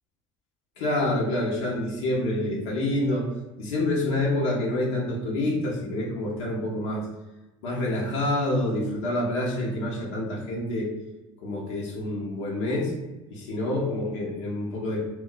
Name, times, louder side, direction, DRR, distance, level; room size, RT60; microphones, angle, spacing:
voice 1, 0.8-3.3 3.6-7.1 7.6-10.9 11.4-12.9 13.3-15.0, left 1 dB, 85° left, -3 dB, 0.8 m, -27 dB
2.3 x 2.1 x 3.8 m, 1.1 s
supercardioid pair, 95°, 15 cm